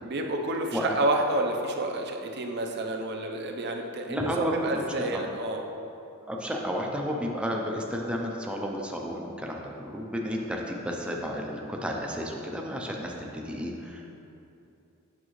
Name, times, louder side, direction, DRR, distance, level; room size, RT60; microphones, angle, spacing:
voice 1, 0.0-5.6, right 2 dB, 50° right, 3 dB, 0.6 m, -29 dB
voice 2, 4.1-5.2 6.3-14.1, equal, 5° right, -1 dB, 0.5 m, -32 dB
8.6 x 5.9 x 3.1 m, 2.8 s
head